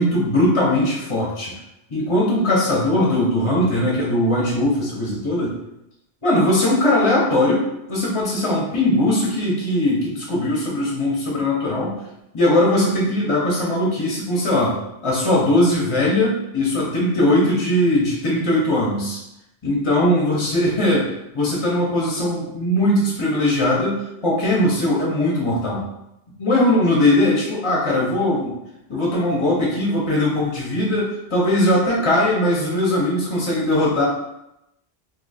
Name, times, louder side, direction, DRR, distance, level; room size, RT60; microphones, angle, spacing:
voice 1, 0.0-1.5 1.9-5.5 6.2-12.0 12.3-14.7 15.0-19.2 19.6-25.8 26.4-28.5 28.9-34.0, left 1 dB, 35° left, -5 dB, 0.7 m, -20 dB
2.7 x 2.4 x 4.0 m, 0.87 s
omnidirectional pair, 1.1 m